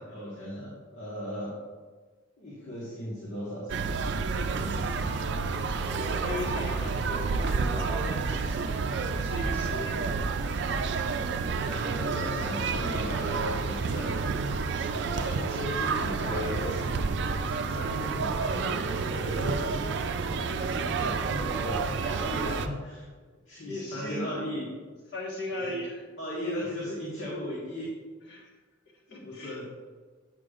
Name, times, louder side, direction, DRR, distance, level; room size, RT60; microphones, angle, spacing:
voice 1, 0.0-1.5 2.4-4.0 4.5-4.9 11.5-14.1 14.8-19.6 20.1-23.1 23.5-24.7 25.5-25.8 26.2-27.9 29.1-29.7, equal, 80° left, -7 dB, 1.6 m, -37 dB
sound 1, 3.7-22.7, right 4 dB, 60° right, 0.4 m, -30 dB
voice 2, 4.6-5.0 5.8-10.2 23.7-24.6 25.1-26.1 26.4-26.7 28.3-28.6 29.1-29.6, left 1 dB, 55° left, -2 dB, 1.5 m, -38 dB
8.2 x 6.7 x 2.5 m, 1.4 s
head